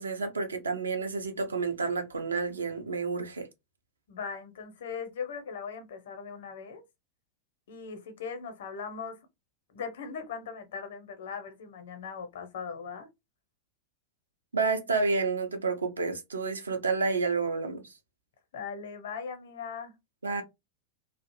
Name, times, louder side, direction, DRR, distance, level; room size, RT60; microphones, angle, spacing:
voice 1, 0.0-3.5 14.5-17.9 20.2-20.4, right 4 dB, 75° right, 0.6 m, -30 dB
voice 2, 4.1-6.8 7.7-9.2 9.7-13.1 18.5-20.0, left 6 dB, 60° left, 0.6 m, -39 dB
2.4 x 2.0 x 2.9 m
figure-of-eight pair, 90°, 0 cm